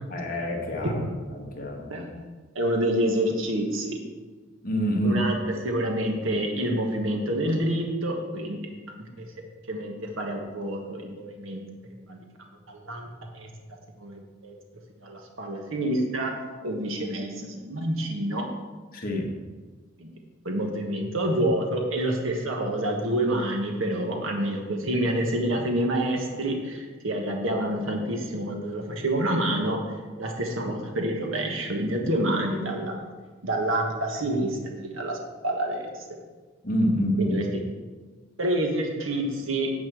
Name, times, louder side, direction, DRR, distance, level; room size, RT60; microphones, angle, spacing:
voice 1, 0.1-1.0 1.3-1.9 4.6-5.2 18.9-19.3 36.6-37.4, equal, 45° left, 0 dB, 1.6 m, -26 dB
voice 2, 1.9-2.2 2.5-4.0 5.0-9.3 9.7-11.6 12.1-12.2 12.7-13.1 13.3-13.5 14.0-14.5 15.0-16.3 16.6-18.4 20.0-20.1 20.4-29.8 30.2-33.0 33.4-35.2 35.4-36.0 37.2-37.4 38.4-39.7, right 1 dB, 75° right, 2 dB, 1.4 m, -28 dB
9.5 x 4.4 x 7.6 m, 1.3 s
head